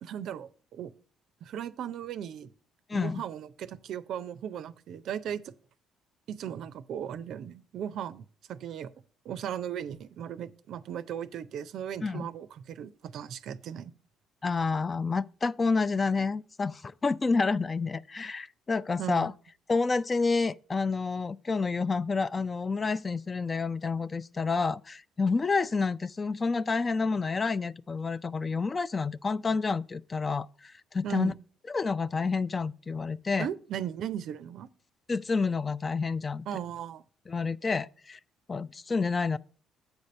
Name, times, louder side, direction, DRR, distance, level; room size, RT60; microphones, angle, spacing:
voice 1, 0.0-0.9 1.4-2.5 2.9-5.5 6.3-8.9 9.3-13.9 19.0-19.3 31.0-31.3 33.4-34.7 36.5-37.0, right 9 dB, 60° right, 0.4 m, -37 dB
voice 2, 2.9-3.2 12.0-12.3 14.4-19.3 19.7-31.3 31.7-33.5 35.1-36.4 37.3-38.2 38.5-39.4, left 4 dB, 35° left, 0.3 m, -29 dB
8.2 x 5.2 x 5.0 m
hypercardioid pair, 45°, 0 cm